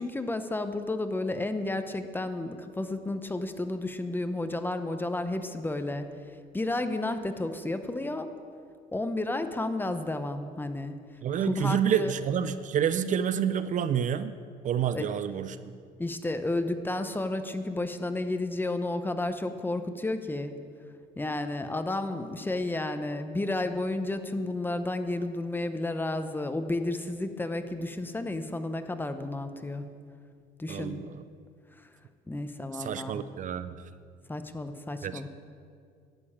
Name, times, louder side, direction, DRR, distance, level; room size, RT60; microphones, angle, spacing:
voice 1, 0.0-6.1 6.5-8.3 8.9-10.9 11.4-12.1 14.9-15.1 16.0-20.5 21.2-29.8 30.6-31.0 32.3-33.2 34.3-35.3, left 2 dB, 10° left, 9 dB, 0.8 m, -32 dB
voice 2, 11.2-14.3 14.6-15.6 30.7-31.1 32.8-33.7 35.0-35.3, right 8 dB, 50° right, 13 dB, 0.5 m, -28 dB
11.5 x 6.9 x 8.7 m, 2.2 s
cardioid pair, 110°, 17 cm